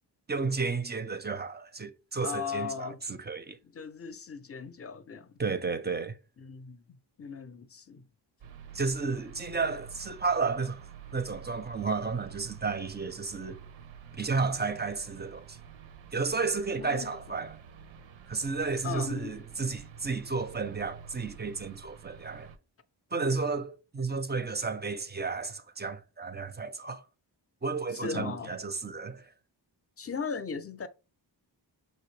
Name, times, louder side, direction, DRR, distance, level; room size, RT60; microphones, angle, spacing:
voice 1, 0.3-3.6 5.4-6.1 8.7-10.8 11.1-13.6 14.2-15.6 16.1-17.5 18.3-22.5 23.1-27.0 27.6-29.3, right 4 dB, 25° right, 0.5 m, -32 dB
voice 2, 2.2-3.0 3.6-5.3 6.4-8.1 16.8-17.1 18.8-19.4 27.9-28.5 30.0-30.9, left 6 dB, 30° left, 0.4 m, -37 dB
sound 1, 8.4-22.6, right 8 dB, 85° right, 0.6 m, -49 dB
5.8 x 2.7 x 3.1 m
cardioid pair, 75°, 45 cm